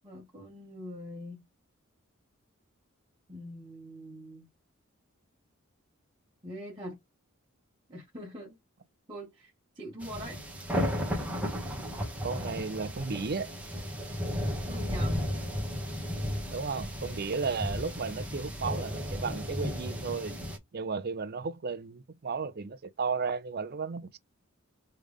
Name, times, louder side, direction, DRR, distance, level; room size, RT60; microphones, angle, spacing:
voice 1, 0.0-1.4 3.3-4.5 6.4-7.0 7.9-8.6 9.1-10.4 14.6-15.2, equal, 25° right, 1.4 m, -43 dB
sound 1, 10.0-20.6, equal, 5° right, 1.3 m, -34 dB
voice 2, 12.2-13.5 16.5-20.4 20.7-24.2, right 4 dB, 50° right, 0.5 m, -34 dB
3.4 x 3.4 x 3.5 m
head